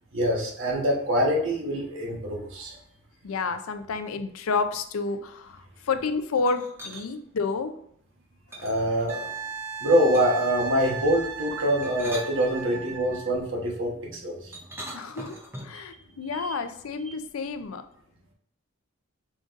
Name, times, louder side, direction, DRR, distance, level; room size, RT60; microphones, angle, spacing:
voice 1, 0.1-2.8 8.6-9.3 9.8-14.6 15.7-15.8 16.3-16.6 17.1-17.2, equal, 70° right, -1 dB, 1.1 m, -25 dB
voice 2, 3.2-7.7 14.9-17.8, left 4 dB, 85° left, 9 dB, 0.5 m, -30 dB
sound 1, 6.3-7.1 8.5-9.4 10.1-10.5 11.7-13.0 14.5-15.9, right 1 dB, 10° right, 0.5 m, -42 dB
Wind instrument woodwind instrument, 9.1-13.3 16.0-16.1, right 5 dB, 90° right, 0.5 m, -36 dB
5.0 x 3.8 x 2.5 m, 0.68 s
head